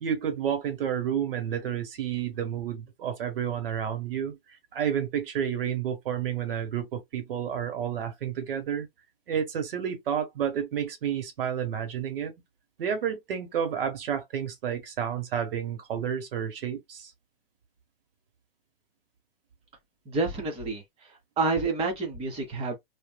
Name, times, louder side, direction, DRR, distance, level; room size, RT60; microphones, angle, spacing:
voice 1, 0.0-8.9 9.3-12.3 12.8-17.1, right 8 dB, 60° right, 1.2 m, -30 dB
voice 2, 20.0-22.7, right 3 dB, 20° right, 1.2 m, -29 dB
3.4 x 2.6 x 2.2 m
hypercardioid pair, 135°, 32 cm